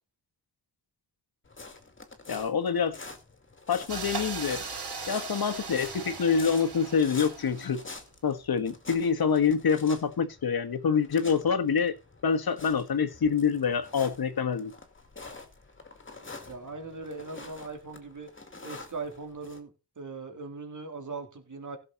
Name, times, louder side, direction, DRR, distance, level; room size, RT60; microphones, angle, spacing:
sound 1, 1.4-19.6, left 3 dB, 30° left, 2.2 m, -47 dB
voice 1, 2.3-2.9 3.7-4.6 5.1-7.8 8.2-11.9 12.2-14.7, left 6 dB, 60° left, 1.5 m, -26 dB
sound 2, 3.9-7.9, right 5 dB, 70° right, 5.8 m, -38 dB
voice 2, 16.5-18.3 18.6-19.7 20.0-21.8, right 4 dB, 45° right, 3.3 m, -39 dB
16.0 x 6.7 x 4.1 m
wide cardioid pair, 110°, 41 cm